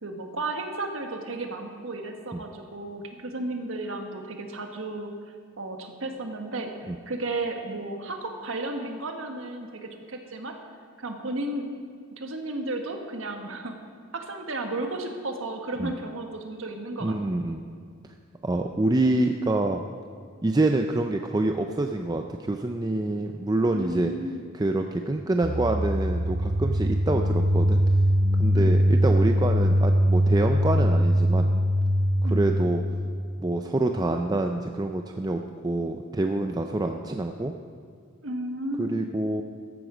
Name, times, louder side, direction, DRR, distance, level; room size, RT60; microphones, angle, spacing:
voice 1, 0.0-5.1 5.6-10.5 11.0-11.7 12.2-13.7 14.1-17.4 23.7-24.4 28.5-28.7 32.2-32.5 38.2-39.0, right 2 dB, 65° right, 4 dB, 1.5 m, -33 dB
voice 2, 17.0-17.6 18.4-19.8 20.4-24.1 24.5-27.8 28.4-31.5 32.2-32.8 33.4-37.5 38.8-39.4, right 2 dB, 20° right, 5 dB, 0.4 m, -26 dB
sound 1, 25.4-33.2, equal, 90° right, 1.1 m, -22 dB
14.0 x 11.0 x 5.1 m, 2.3 s
head